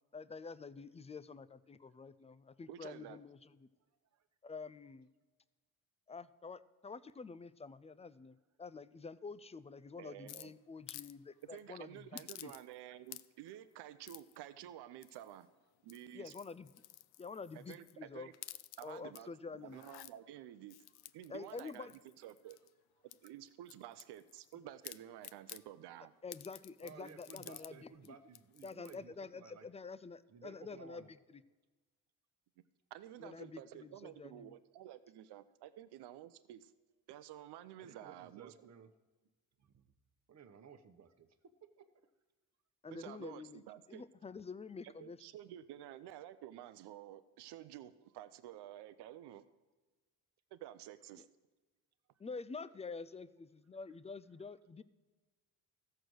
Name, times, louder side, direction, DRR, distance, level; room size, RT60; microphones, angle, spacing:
voice 1, 0.1-3.7 4.4-5.1 6.1-12.5 16.1-16.7 17.2-18.3 18.8-19.8 21.3-21.9 26.2-28.1 28.6-31.1 33.2-34.5 42.8-43.6 43.9-45.2 52.2-54.8, left 4 dB, 15° left, 17 dB, 0.4 m, -48 dB
voice 2, 2.7-3.2 10.0-10.5 11.5-15.5 15.8-16.3 17.5-18.3 18.8-20.8 21.1-22.6 23.0-26.1 32.9-36.7 37.1-38.5 42.9-44.0 44.8-49.4 50.5-51.3, right 12 dB, 90° right, 13 dB, 0.6 m, -51 dB
sound 1, 10.3-11.1 11.4-11.6 12.2-12.8 13.1-13.5 14.1-14.4 15.0-15.4 15.8-17.9 18.3-19.2 19.7-20.1 20.7-22.7 23.1-24.5 24.8-25.6 26.3-27.7 28.0-28.1 28.3-29.0, left 15 dB, 75° left, 0.5 m, -52 dB
voice 3, 26.8-29.7 30.3-31.1 37.8-38.9 39.6-39.9 40.3-42.1, right 7 dB, 45° right, 8 dB, 1.0 m, -57 dB
14.5 x 6.7 x 6.2 m, 1.2 s
cardioid pair, 90°, 39 cm